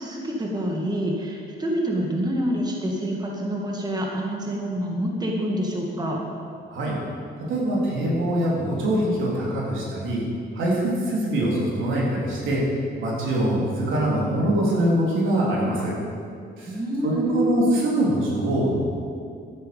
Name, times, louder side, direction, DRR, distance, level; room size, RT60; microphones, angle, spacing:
voice 1, 0.0-6.2 16.7-17.7, equal, 20° right, -1 dB, 1.9 m, -27 dB
voice 2, 7.5-10.2 10.5-12.6 13.0-15.9 16.6-16.8 17.0-18.8, right 1 dB, 80° right, -4 dB, 3.7 m, -23 dB
12.5 x 10.5 x 5.3 m, 2.4 s
cardioid pair, 90°, 20 cm